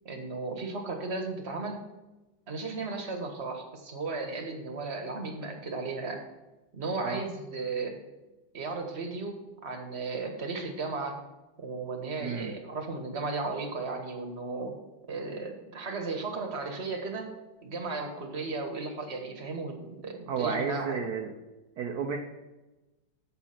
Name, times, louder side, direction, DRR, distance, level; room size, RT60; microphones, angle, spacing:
voice 1, 0.0-1.8 2.5-6.2 6.7-8.0 8.5-11.2 11.6-14.7 15.1-17.3 17.6-21.0, right 3 dB, 35° right, 4 dB, 1.5 m, -35 dB
voice 2, 12.2-12.5 20.3-21.3 21.8-22.2, right 6 dB, 60° right, 2 dB, 1.2 m, -32 dB
8.1 x 7.1 x 5.8 m, 1.1 s
omnidirectional pair, 2.1 m